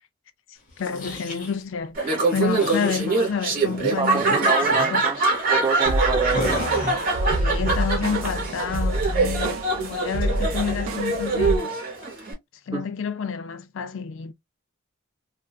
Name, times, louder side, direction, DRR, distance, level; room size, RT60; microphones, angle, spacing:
voice 1, 0.5-5.1 7.3-11.8 12.7-14.3, left 6 dB, 65° left, 0.4 m, -29 dB
sound 1, 0.7-1.6 2.5-3.1 3.7-4.4 4.7-5.0 6.3-7.2, left 1 dB, 40° left, 0.7 m, -32 dB
Laughter, 2.0-12.3, right 3 dB, 40° right, 0.9 m, -24 dB
voice 2, 4.0-6.7 12.7-12.8, right 4 dB, 20° right, 0.3 m, -27 dB
sound 2, 5.9-11.6, right 1 dB, 70° right, 0.5 m, -28 dB
2.5 x 2.3 x 2.2 m
head